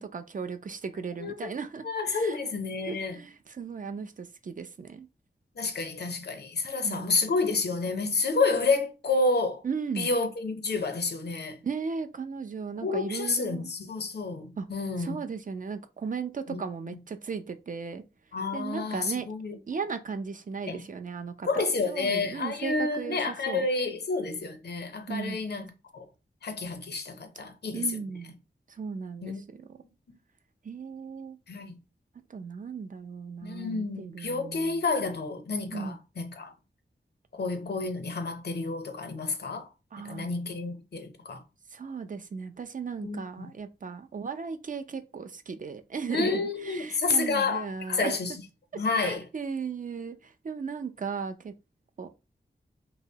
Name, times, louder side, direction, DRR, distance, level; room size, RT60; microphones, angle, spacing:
voice 1, 0.0-2.4 2.9-5.1 6.8-7.1 9.6-10.1 11.6-13.7 14.6-14.7 15.0-18.0 18.5-19.3 19.7-23.7 25.1-25.4 27.7-28.3 28.7-29.3 30.6-31.4 32.3-34.8 35.7-36.0 39.9-40.3 41.7-48.1 49.0-51.5 52.0-52.1, right 5 dB, 45° right, 0.4 m, -36 dB
voice 2, 1.2-1.5 1.8-3.2 5.6-9.6 10.0-11.6 12.8-15.2 16.5-16.6 16.9-17.0 18.3-19.6 20.7-20.8 21.5-26.0 26.4-28.0 29.2-29.4 31.5-31.8 33.4-36.5 37.3-39.7 40.0-41.4 43.0-43.5 46.1-48.4 48.7-49.2, left 3 dB, 60° left, 0.6 m, -30 dB
2.7 x 2.0 x 2.7 m
cardioid pair, 40°, 19 cm